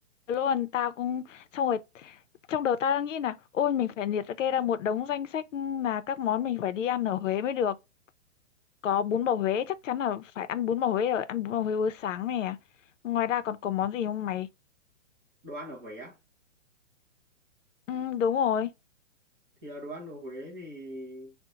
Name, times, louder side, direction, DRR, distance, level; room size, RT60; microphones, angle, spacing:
voice 1, 0.3-2.2 2.5-7.8 8.8-12.6 13.0-14.5 17.9-18.7, left 9 dB, 75° left, 0.6 m, -28 dB
voice 2, 15.4-16.2 19.6-21.3, equal, 15° right, 0.4 m, -41 dB
2.8 x 2.1 x 3.5 m
hypercardioid pair, 150°, 38 cm